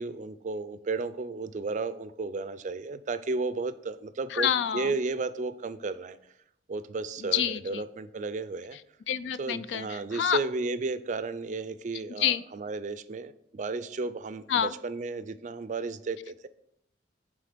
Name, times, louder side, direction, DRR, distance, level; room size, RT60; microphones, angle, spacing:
voice 1, 0.0-6.2 6.7-8.8 9.4-16.5, right 3 dB, 40° right, 13 dB, 0.4 m, -33 dB
voice 2, 4.3-4.9 7.2-7.8 9.1-10.4 12.2-12.4 14.5-14.7, left 9 dB, 75° left, 15 dB, 0.4 m, -28 dB
9.2 x 3.7 x 5.1 m, 0.76 s
head